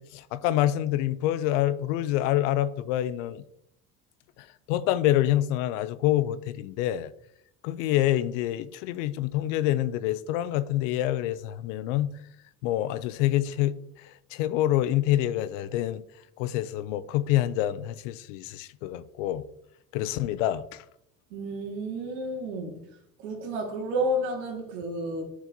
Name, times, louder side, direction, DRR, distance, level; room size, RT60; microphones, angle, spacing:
voice 1, 0.0-3.4 4.7-7.1 7.6-12.1 12.6-13.7 14.3-16.0 16.4-19.4 19.9-20.8, left 13 dB, 85° left, 0.5 m, -26 dB
voice 2, 21.3-22.8 23.2-25.2, right 1 dB, 85° right, 2.0 m, -31 dB
11.0 x 4.6 x 2.7 m
supercardioid pair, 80°, 36 cm